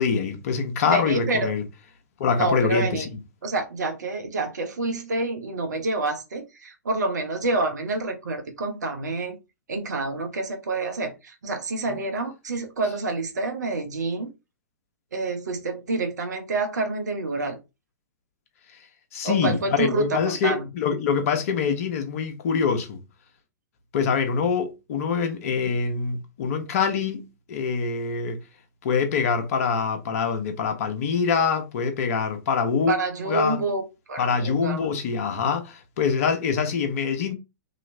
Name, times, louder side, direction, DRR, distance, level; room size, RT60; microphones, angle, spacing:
voice 1, 0.0-1.6 2.2-3.1 19.1-23.0 23.9-28.4 28.8-32.9 33.3-33.6 34.2-37.3, left 6 dB, 55° left, 0.8 m, -25 dB
voice 2, 0.8-1.5 2.4-3.1 3.4-9.4 9.7-14.3 15.1-17.6 19.2-20.7 32.9-34.9, right 3 dB, 75° right, 1.0 m, -28 dB
3.0 x 2.9 x 2.6 m
figure-of-eight pair, 110°, 9 cm